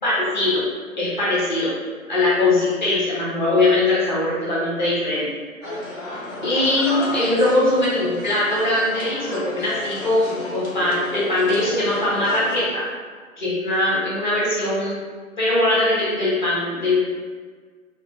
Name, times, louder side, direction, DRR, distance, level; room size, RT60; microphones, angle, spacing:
voice 1, 0.0-0.6 1.0-1.7 2.1-5.3 6.4-12.8 13.4-15.0 15.4-17.0, left 2 dB, 35° left, -8 dB, 0.9 m, -21 dB
sound 1, 5.6-12.6, left 2 dB, 60° left, 1.2 m, -33 dB
3.8 x 2.1 x 3.1 m, 1.5 s
figure-of-eight pair, 145°, 42 cm